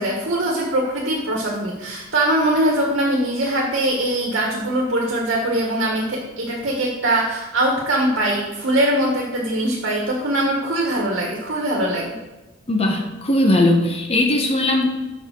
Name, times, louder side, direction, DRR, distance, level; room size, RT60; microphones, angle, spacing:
voice 1, 0.0-12.2, right 1 dB, 60° right, -1 dB, 1.7 m, -22 dB
voice 2, 12.7-14.9, left 1 dB, 30° left, 2 dB, 1.0 m, -18 dB
7.1 x 5.6 x 6.6 m, 1.1 s
head